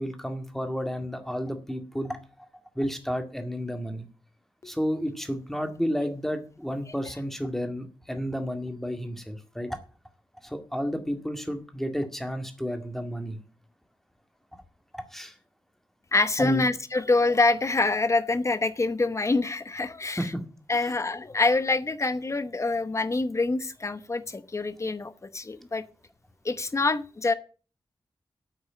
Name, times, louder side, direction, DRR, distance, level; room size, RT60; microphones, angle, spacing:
voice 1, 0.0-2.2 2.8-4.1 4.6-9.8 10.4-13.4 14.9-15.3 16.4-16.7 20.2-20.4 20.8-20.9, equal, 5° left, 2.0 m, -31 dB
voice 2, 16.1-20.3 20.7-25.8 26.4-27.3, left 3 dB, 35° left, 1.1 m, -26 dB
9.0 x 8.5 x 8.5 m
wide cardioid pair, 125°, 8 cm